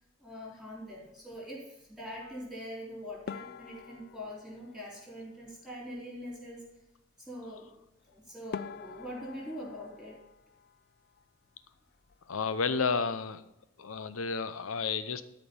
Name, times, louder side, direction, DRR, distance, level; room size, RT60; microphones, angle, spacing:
voice 1, 0.2-6.7 7.3-7.7 8.1-10.2, equal, ahead, -6 dB, 3.8 m, -43 dB
sound 1, 3.3-5.7 8.0-8.1 8.5-11.3 11.5-12.3 12.6-12.8 13.1-13.2 13.9-14.2, left 6 dB, 50° left, 0.3 m, -46 dB
voice 2, 12.3-13.4 13.8-15.2, left 5 dB, 85° left, 13 dB, 0.7 m, -31 dB
13.0 x 5.3 x 5.3 m, 0.89 s
head